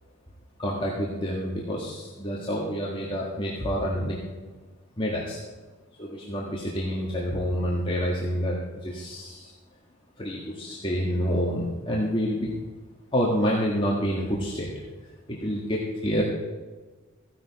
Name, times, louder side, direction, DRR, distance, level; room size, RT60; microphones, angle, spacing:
voice 1, 0.6-4.2 5.0-5.4 6.0-9.5 10.2-12.6 13.1-14.8 15.3-16.2, equal, 25° left, -4 dB, 1.7 m, -28 dB
15.0 x 11.0 x 4.2 m, 1.3 s
head